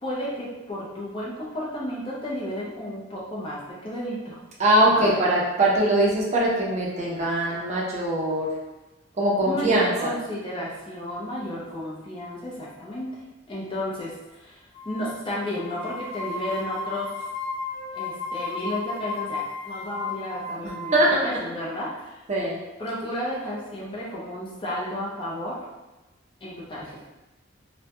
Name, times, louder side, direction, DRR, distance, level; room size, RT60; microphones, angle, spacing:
voice 1, 0.0-4.4 4.9-5.2 9.4-17.3 17.9-22.2 22.8-25.6 26.4-27.1, left 1 dB, 25° left, -5 dB, 0.5 m, -33 dB
voice 2, 4.6-8.5 9.2-10.1 20.9-21.3 22.3-22.6, right 1 dB, 35° right, -4 dB, 0.5 m, -22 dB
sound 1, 14.7-15.2 15.5-21.1, left 3 dB, 70° left, 0.7 m, -34 dB
2.2 x 2.0 x 2.8 m, 1.1 s
head